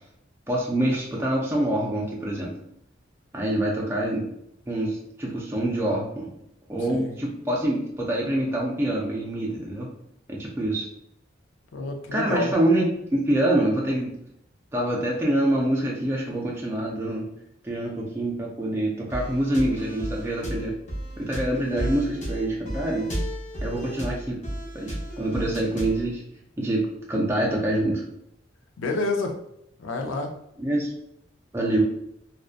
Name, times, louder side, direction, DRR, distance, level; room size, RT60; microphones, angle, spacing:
voice 1, 0.5-2.5 3.3-4.3 4.7-6.3 6.7-9.9 10.3-10.9 12.1-14.2 14.7-17.3 17.6-20.8 21.2-23.1 23.6-24.4 24.7-26.2 26.6-28.0 30.6-30.9 31.5-31.8, right 1 dB, 15° right, -3 dB, 0.3 m, -25 dB
voice 2, 6.9-7.2 11.7-12.6 28.8-29.3 29.8-30.3, left 3 dB, 80° left, 4 dB, 0.4 m, -28 dB
sound 1, 19.1-26.1, right 1 dB, 40° left, 0.6 m, -33 dB
2.5 x 2.1 x 2.4 m, 0.75 s
head